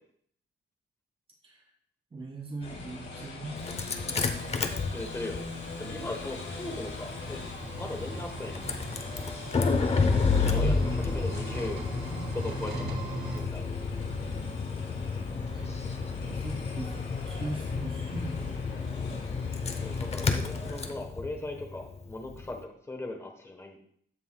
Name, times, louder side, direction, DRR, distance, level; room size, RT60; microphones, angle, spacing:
voice 1, 2.1-3.7 10.5-11.0 15.5-15.8 16.2-19.0, right 2 dB, 30° right, -2 dB, 2.6 m, -39 dB
sound 1, 2.6-20.9, left 3 dB, 70° left, 3.5 m, -43 dB
Engine starting, 3.6-22.5, left 4 dB, 30° left, 0.7 m, -31 dB
voice 2, 4.9-5.4 5.8-7.4 7.8-8.9 10.4-11.8 12.3-13.0 13.3-13.6 19.8-23.8, left 2 dB, 15° left, 3 dB, 1.0 m, -38 dB
sound 2, 6.5-13.4, right 4 dB, 55° right, 2.1 m, -41 dB
14.5 x 5.5 x 2.2 m, 0.64 s
wide cardioid pair, 155°, 20 cm